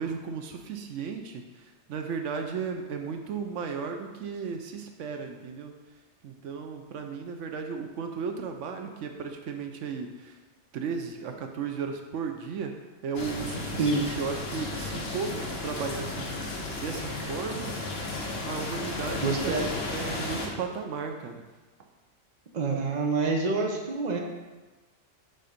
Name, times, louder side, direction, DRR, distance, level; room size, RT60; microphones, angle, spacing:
voice 1, 0.0-5.8 6.2-10.4 10.7-12.7 13.0-17.8 18.5-21.5, right 5 dB, 85° right, 4 dB, 1.0 m, -35 dB
sound 1, 13.1-20.5, left 2 dB, 60° left, 1.2 m, -34 dB
voice 2, 13.8-14.1 19.2-19.6 22.5-24.2, right 4 dB, 40° right, 1 dB, 0.9 m, -27 dB
7.8 x 3.8 x 5.1 m, 1.2 s
omnidirectional pair, 1.3 m